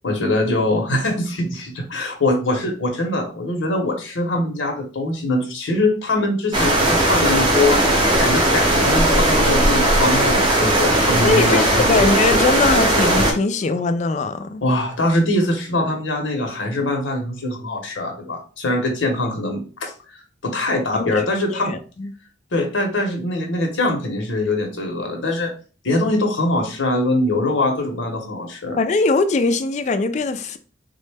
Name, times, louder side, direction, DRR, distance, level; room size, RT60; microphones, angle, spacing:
voice 1, 0.0-7.8 8.2-12.1 14.6-19.9 20.4-21.7 22.5-25.5 25.8-28.8, left 2 dB, 80° left, 0.8 m, -22 dB
sound 1, 6.5-13.3, right 1 dB, 25° right, 0.7 m, -17 dB
voice 2, 11.2-14.6 20.9-21.1 21.5-22.1 28.8-30.6, left 3 dB, 40° left, 0.3 m, -21 dB
3.7 x 2.1 x 3.3 m
head